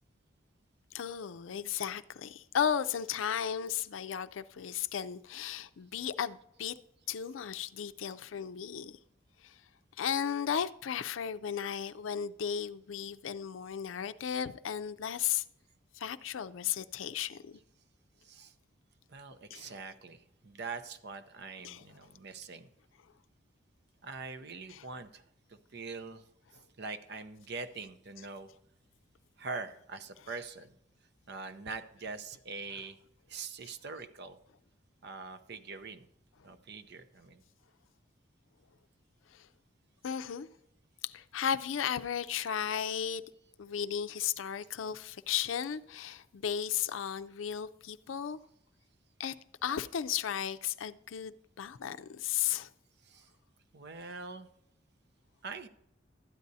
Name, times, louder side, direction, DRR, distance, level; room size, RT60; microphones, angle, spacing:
voice 1, 0.9-6.7 7.1-9.0 9.4-9.5 10.0-15.4 15.9-17.6 19.5-19.8 21.6-21.8 24.7-24.9 32.8-32.9 39.3-39.5 40.0-40.5 41.0-43.2 43.6-48.4 49.2-49.3 49.6-52.7, left 8 dB, 90° left, 0.4 m, -35 dB
voice 2, 19.1-22.7 24.0-25.2 25.5-26.2 26.8-28.5 29.4-30.7 31.3-33.0 33.3-34.4 35.0-36.1 36.4-37.4 53.1-53.3 53.7-54.5 55.4-55.7, right 4 dB, 60° right, 0.7 m, -43 dB
12.5 x 9.4 x 2.7 m
head